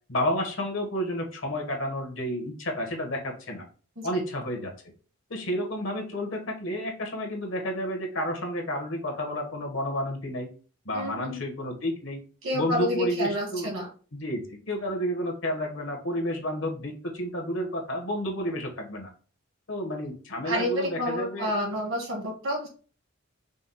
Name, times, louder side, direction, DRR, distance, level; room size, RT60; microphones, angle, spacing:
voice 1, 0.1-3.6 4.0-4.9 5.3-10.5 10.8-12.2 12.5-13.7 14.1-19.1 19.7-21.5, equal, 60° left, 3 dB, 1.2 m, -31 dB
voice 2, 10.9-11.4 12.4-13.9 20.4-22.7, equal, 65° right, 0 dB, 1.8 m, -29 dB
5.2 x 2.3 x 4.0 m, 0.39 s
head